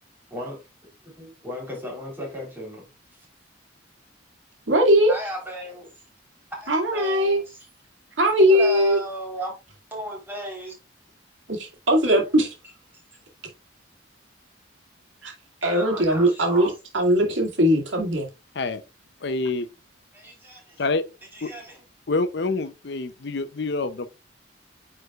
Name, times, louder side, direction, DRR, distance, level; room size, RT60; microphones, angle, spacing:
voice 1, 1.4-2.9 3.1-3.3 5.1-5.9 6.5-7.6 8.4-9.5 9.9-10.7 15.6-16.7 20.1-20.8 21.3-21.8, equal, 10° right, 3.6 m, -35 dB
voice 2, 4.7-5.1 6.7-7.4 8.2-9.0 11.5-12.5 15.2-15.3 15.6-18.3, equal, 85° right, 2.3 m, -20 dB
voice 3, 19.2-19.7 20.8-21.0 21.4-21.5 22.1-24.1, left 3 dB, 60° left, 0.6 m, -26 dB
9.4 x 4.8 x 2.4 m
head